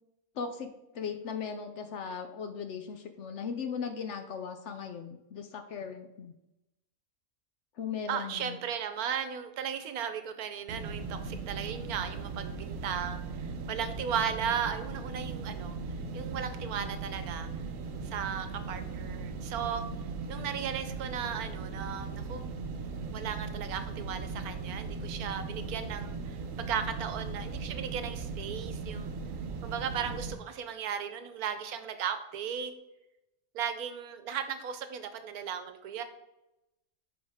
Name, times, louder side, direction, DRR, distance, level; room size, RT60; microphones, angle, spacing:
voice 1, 0.4-0.7 0.9-6.3 7.8-8.6, left 6 dB, 65° left, 7 dB, 0.8 m, -38 dB
voice 2, 8.1-15.7 16.1-17.5 18.0-19.8 20.3-22.5 23.1-29.1 29.6-32.7 33.5-36.0, right 8 dB, 80° right, 9 dB, 1.2 m, -36 dB
sound 1, 10.7-30.3, right 4 dB, 65° right, 1.0 m, -38 dB
10.0 x 4.0 x 3.5 m, 0.93 s
omnidirectional pair, 1.6 m